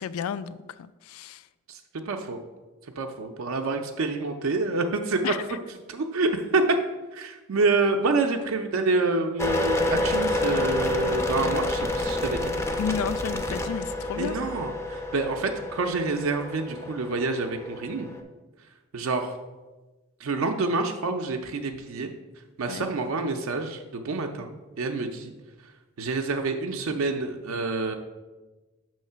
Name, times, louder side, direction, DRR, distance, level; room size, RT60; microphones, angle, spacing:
voice 1, 0.0-1.5 5.2-5.6 12.8-14.4 22.7-22.9, left 7 dB, 80° left, 16 dB, 0.3 m, -32 dB
voice 2, 1.7-2.4 3.0-5.3 5.9-6.8 7.1-12.5 14.2-18.1 18.9-19.4 20.2-22.1 22.6-25.3 26.0-28.0, right 3 dB, 75° right, 4 dB, 0.4 m, -27 dB
sound 1, 9.4-18.2, left 1 dB, 15° left, 0.4 m, -28 dB
6.4 x 3.1 x 5.5 m, 1.2 s
head